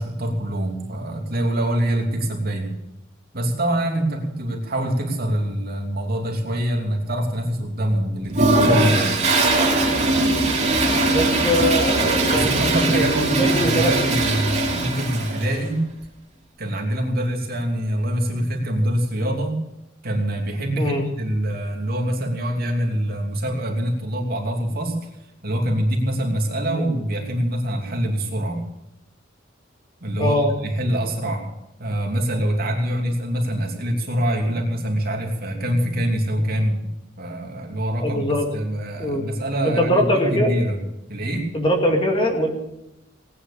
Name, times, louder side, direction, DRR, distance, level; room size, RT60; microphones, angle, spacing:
voice 1, 0.0-2.7 3.3-9.2 12.3-15.8 16.6-19.6 20.0-25.0 25.4-28.6 30.0-31.4 31.8-36.8 37.2-40.8 41.1-41.5, right 1 dB, 50° right, 1 dB, 3.0 m, -24 dB
Toilet flush, 8.3-15.6, right 2 dB, 35° right, 3.7 m, -20 dB
voice 2, 11.1-12.6 12.9-13.9 20.8-21.1 30.2-30.5 38.0-38.5 39.0-39.3 39.6-40.5 41.5-42.5, equal, 25° left, 2 dB, 2.3 m, -22 dB
18.5 x 10.0 x 7.0 m, 0.88 s
head